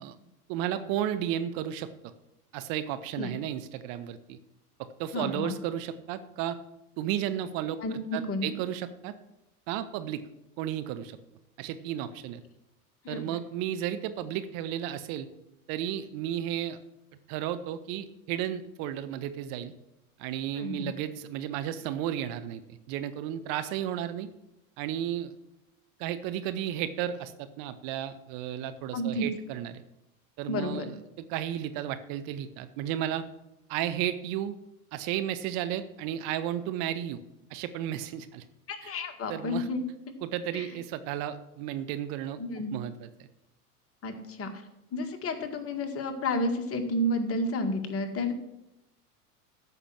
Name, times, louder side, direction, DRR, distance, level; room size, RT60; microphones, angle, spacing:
voice 1, 0.5-1.9 2.5-4.4 4.8-6.6 7.0-9.1 9.7-10.2 10.6-11.2 11.6-12.4 13.1-15.3 15.7-16.8 17.3-19.7 20.2-22.6 22.9-24.3 24.8-25.3 26.0-29.8 30.4-31.0 31.3-33.2 33.7-34.5 34.9-37.2 37.5-38.4 38.8-38.9 39.3-39.7 40.2-43.3, right 11 dB, 45° right, 11 dB, 1.0 m, -33 dB
voice 2, 5.1-5.5 7.8-8.5 13.0-13.3 20.6-20.9 28.9-29.3 30.5-30.9 38.7-39.8 40.5-40.7 42.4-42.7 44.0-44.5 44.9-48.3, left 1 dB, 30° left, 5 dB, 2.0 m, -31 dB
13.5 x 6.0 x 7.6 m, 0.90 s
hypercardioid pair, 90°, 45 cm